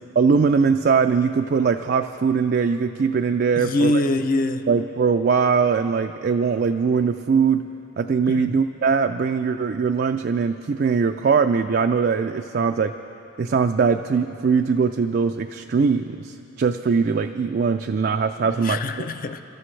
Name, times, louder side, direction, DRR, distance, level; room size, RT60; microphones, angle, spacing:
voice 1, 0.2-4.0 4.7-7.7 8.0-12.9 13.4-18.8, right 5 dB, 45° right, 6 dB, 0.3 m, -21 dB
voice 2, 3.5-4.7 8.2-8.5 18.4-19.4, left 2 dB, 40° left, 9 dB, 0.5 m, -24 dB
28.5 x 13.5 x 3.2 m, 3.0 s
head